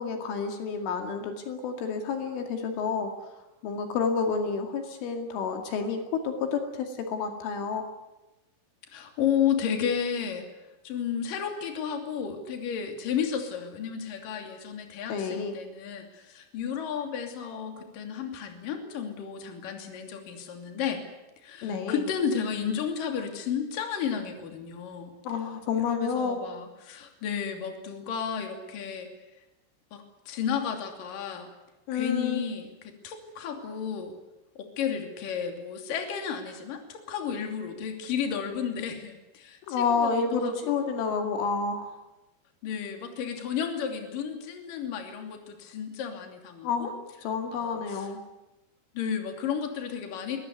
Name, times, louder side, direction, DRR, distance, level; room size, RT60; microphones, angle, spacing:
voice 1, 0.0-3.3 3.6-7.9 15.1-15.5 21.6-22.0 25.3-26.4 31.9-32.5 39.7-42.0 46.6-46.9 47.2-48.2, left 5 dB, 80° left, 4 dB, 4.8 m, -29 dB
voice 2, 8.9-10.5 10.8-21.0 21.4-25.1 25.7-29.1 29.9-31.5 31.9-34.1 34.6-40.7 42.6-46.9 47.5-48.1 48.9-50.4, left 7 dB, 50° left, 4 dB, 4.1 m, -32 dB
23.0 x 20.0 x 9.7 m, 1.0 s
omnidirectional pair, 5.6 m